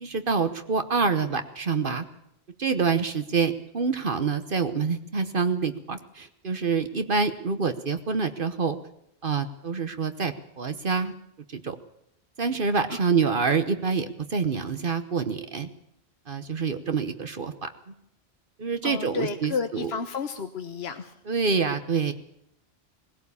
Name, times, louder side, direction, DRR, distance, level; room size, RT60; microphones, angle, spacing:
voice 1, 0.0-2.0 2.6-8.8 9.2-11.1 11.5-11.8 12.4-15.7 16.3-17.7 18.6-19.9 21.2-22.1, right 5 dB, 55° right, 9 dB, 1.2 m, -26 dB
voice 2, 18.8-21.1, left 5 dB, 75° left, 7 dB, 1.3 m, -31 dB
19.5 x 16.5 x 8.4 m, 0.76 s
omnidirectional pair, 1.1 m